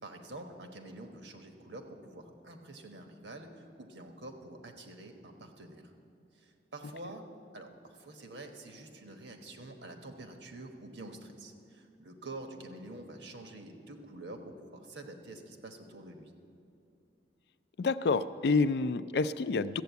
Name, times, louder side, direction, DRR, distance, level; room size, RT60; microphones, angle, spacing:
voice 1, 0.0-5.9 6.3-7.2 7.5-16.3, right 2 dB, 85° right, 4 dB, 1.2 m, -47 dB
voice 2, 17.8-19.8, left 4 dB, 65° left, 14 dB, 0.4 m, -28 dB
13.5 x 8.2 x 8.2 m, 2.6 s
head